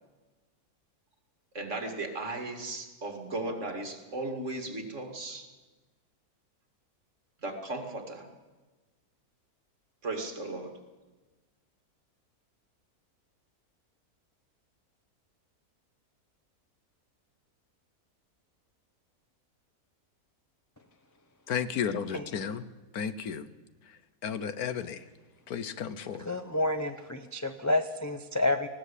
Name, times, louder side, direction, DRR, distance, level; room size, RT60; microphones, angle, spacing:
voice 1, 1.5-5.5 7.4-8.3 10.0-10.8, right 2 dB, 50° right, 4 dB, 2.7 m, -36 dB
voice 2, 21.5-22.6 22.9-23.5 23.9-24.0 24.2-25.0 25.5-26.3, left 7 dB, 75° left, 13 dB, 1.4 m, -33 dB
voice 3, 26.2-28.7, left 2 dB, 15° left, 6 dB, 0.6 m, -29 dB
19.5 x 16.0 x 8.3 m, 1.2 s
omnidirectional pair, 1.6 m